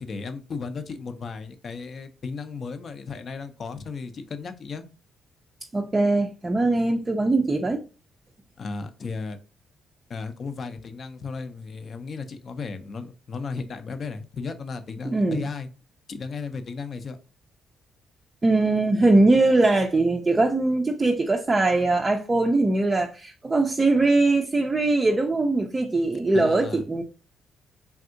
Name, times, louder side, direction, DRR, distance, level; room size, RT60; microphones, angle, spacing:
voice 1, 0.0-4.9 8.6-9.4 10.1-15.7 16.1-17.2 26.3-26.8, left 4 dB, 50° left, 0.5 m, -35 dB
voice 2, 5.7-7.8 15.1-15.5 18.4-27.0, right 2 dB, 25° right, 0.4 m, -21 dB
3.4 x 2.6 x 2.5 m
cardioid pair, 90°, 0 cm